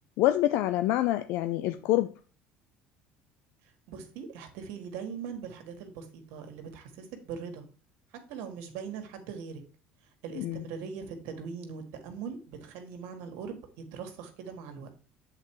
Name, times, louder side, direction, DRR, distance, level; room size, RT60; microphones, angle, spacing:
voice 1, 0.2-2.1 10.4-10.6, left 14 dB, 75° left, 0.4 m, -26 dB
voice 2, 3.9-7.6 8.1-9.6 10.2-13.6 13.9-14.9, right 6 dB, 80° right, 1.6 m, -41 dB
7.6 x 4.1 x 4.7 m
supercardioid pair, 110°, 4 cm